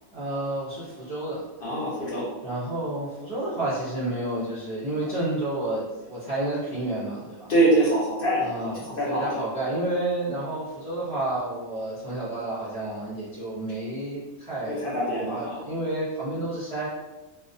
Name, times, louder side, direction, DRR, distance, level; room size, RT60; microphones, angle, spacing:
voice 1, 0.1-1.4 2.4-7.5 8.4-14.9 15.1-16.9, right 1 dB, 45° right, -10 dB, 0.5 m, -30 dB
voice 2, 1.6-2.3 7.5-8.4 9.0-9.4 14.6-15.6, right 1 dB, 50° left, -7 dB, 0.7 m, -24 dB
2.3 x 2.1 x 2.5 m, 1.1 s
omnidirectional pair, 1.4 m